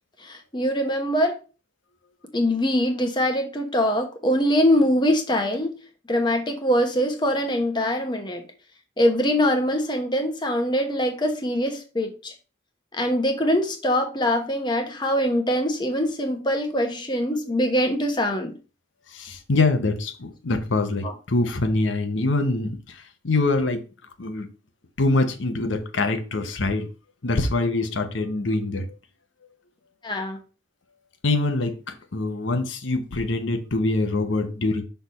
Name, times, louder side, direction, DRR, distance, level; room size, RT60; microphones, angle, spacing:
voice 1, 0.2-1.4 2.3-5.7 6.1-8.4 9.0-12.3 12.9-18.6 21.0-21.1 30.0-30.4, equal, 25° left, 1.1 m, -23 dB
voice 2, 19.1-23.8 24.2-24.5 25.0-26.9 27.2-28.9 31.2-34.8, left 2 dB, 70° left, 0.8 m, -24 dB
6.1 x 3.4 x 5.5 m
head